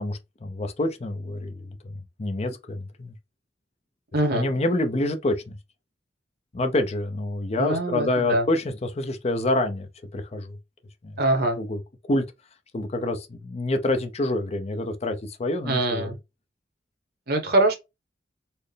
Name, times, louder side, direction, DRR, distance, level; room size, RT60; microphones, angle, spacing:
voice 1, 0.0-3.1 4.3-5.6 6.5-10.6 11.0-11.1 11.6-11.8 12.1-12.2 12.7-16.1, left 2 dB, 40° left, 0.6 m, -27 dB
voice 2, 4.1-4.5 7.6-8.4 11.2-11.6 15.6-16.2 17.3-17.7, right 2 dB, 60° right, 1.1 m, -23 dB
4.3 x 2.1 x 3.3 m
head